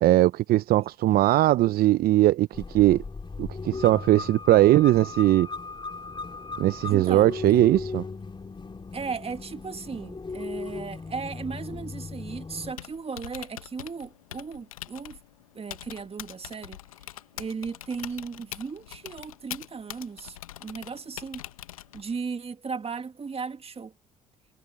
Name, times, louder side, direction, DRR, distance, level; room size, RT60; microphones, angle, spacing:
voice 1, 0.0-3.0 3.4-5.5 6.6-8.0, right 15 dB, 60° right, 0.7 m, -20 dB
sound 1, 2.5-12.7, left 4 dB, 30° left, 2.9 m, -37 dB
voice 2, 6.9-7.6 8.9-15.2 15.6-16.8 17.4-21.4 21.9-23.9, right 5 dB, 35° right, 2.1 m, -36 dB
Typing, 12.6-22.2, left 13 dB, 90° left, 1.1 m, -43 dB
hypercardioid pair, 50°, 17 cm